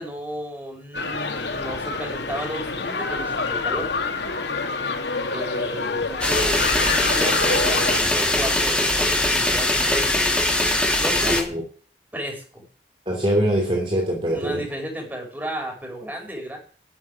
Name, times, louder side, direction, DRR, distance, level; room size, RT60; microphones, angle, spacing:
voice 1, 0.0-3.9 5.3-10.3 11.0-11.5 12.1-12.6 14.3-16.6, equal, 10° right, 1 dB, 5.6 m, -33 dB
sound 1, 0.9-8.0, left 3 dB, 80° left, 2.4 m, -27 dB
sound 2, 6.2-11.4, left 1 dB, 5° left, 2.7 m, -21 dB
voice 2, 11.2-11.6 13.1-14.7, right 1 dB, 30° right, -1 dB, 3.0 m, -23 dB
13.0 x 7.6 x 9.9 m, 0.41 s
head